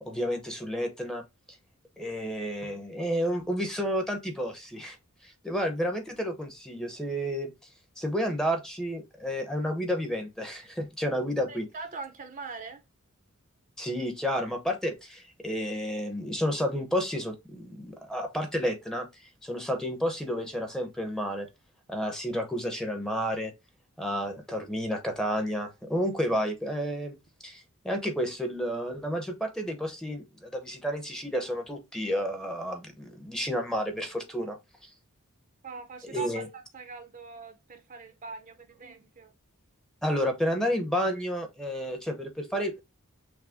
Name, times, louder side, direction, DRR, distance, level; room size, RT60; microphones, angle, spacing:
voice 1, 0.0-1.2 2.0-5.0 5.2-7.5 8.0-11.7 13.8-19.1 19.4-21.5 21.9-23.5 24.0-27.2 27.4-34.9 36.0-36.5 40.0-42.8, equal, 5° left, 0.8 m, -31 dB
voice 2, 11.5-12.8 35.6-39.3, right 3 dB, 35° right, 0.7 m, -42 dB
6.1 x 2.1 x 3.5 m
head